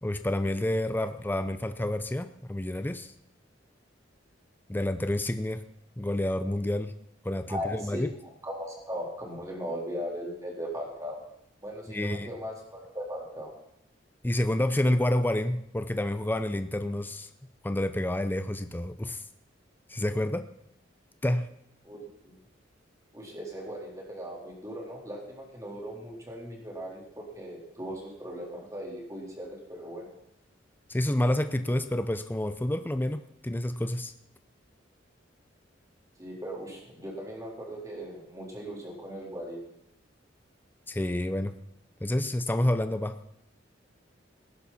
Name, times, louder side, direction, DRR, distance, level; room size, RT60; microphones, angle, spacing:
voice 1, 0.0-3.1 4.7-5.6 6.0-6.9 7.2-8.1 11.9-12.4 14.2-17.3 17.6-19.2 19.9-20.5 21.2-21.5 30.9-34.1 40.9-41.5 42.0-43.1, left 1 dB, 10° left, 10 dB, 0.6 m, -29 dB
voice 2, 7.5-8.0 8.4-11.2 11.6-13.5 21.8-22.3 23.1-30.1 36.2-39.7, equal, 20° right, -2 dB, 4.0 m, -38 dB
19.0 x 10.5 x 4.3 m, 0.78 s
head